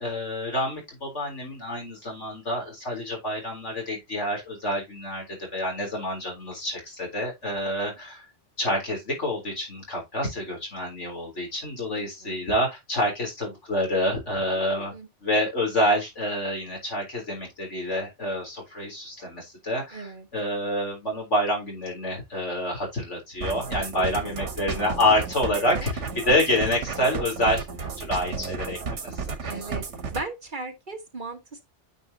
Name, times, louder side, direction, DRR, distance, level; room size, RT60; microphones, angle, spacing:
voice 1, 0.0-5.2 5.5-8.3 8.6-14.9 15.2-20.1 20.3-25.9 26.3-27.7 28.0-28.8 29.0-29.5, left 1 dB, 80° left, 4.0 m, -27 dB
voice 2, 7.6-8.0 11.9-12.4 14.5-15.1 19.9-20.3 23.9-24.6 25.5-25.9 29.5-29.9 30.1-31.6, right 3 dB, 45° right, 1.5 m, -38 dB
sound 1, 23.4-30.2, right 5 dB, 80° right, 1.6 m, -33 dB
9.3 x 5.6 x 2.8 m
omnidirectional pair, 1.2 m